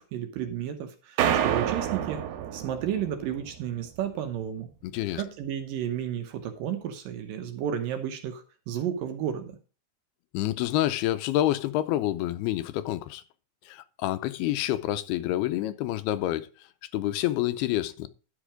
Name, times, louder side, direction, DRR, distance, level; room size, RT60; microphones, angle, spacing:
voice 1, 0.0-2.2 2.5-4.7 5.2-9.5, right 9 dB, 70° right, 2.4 m, -32 dB
sound 1, 1.2-3.6, right 10 dB, 85° right, 3.1 m, -28 dB
voice 2, 4.8-5.2 10.3-13.2 13.7-16.7 16.9-18.1, left 14 dB, 80° left, 2.6 m, -28 dB
11.5 x 6.0 x 4.9 m
omnidirectional pair, 4.6 m